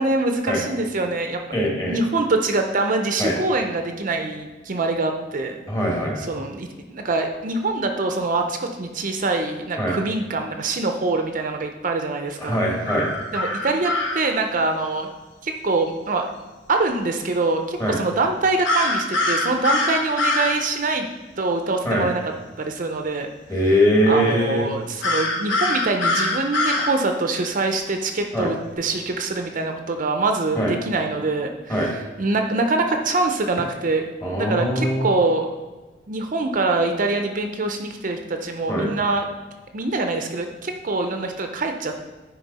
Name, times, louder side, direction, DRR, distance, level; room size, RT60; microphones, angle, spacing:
voice 1, 0.0-1.4 1.8-5.6 6.2-12.6 13.3-15.1 15.4-16.2 16.7-21.1 21.4-22.2 22.6-23.3 24.1-35.5 36.1-39.3 39.7-41.9, right 3 dB, 45° right, 4 dB, 0.6 m, -24 dB
voice 2, 1.5-2.0 3.2-3.3 5.7-6.2 9.8-10.0 12.4-13.1 17.8-18.0 21.9-22.1 23.5-24.7 28.3-28.5 30.6-30.7 31.7-31.9 34.2-35.0 38.7-38.9, equal, 20° left, -2 dB, 1.8 m, -21 dB
sound 1, 12.9-14.2 18.6-20.5 25.0-26.9, left 2 dB, 85° left, 1.1 m, -23 dB
9.6 x 4.7 x 4.1 m, 1.2 s
head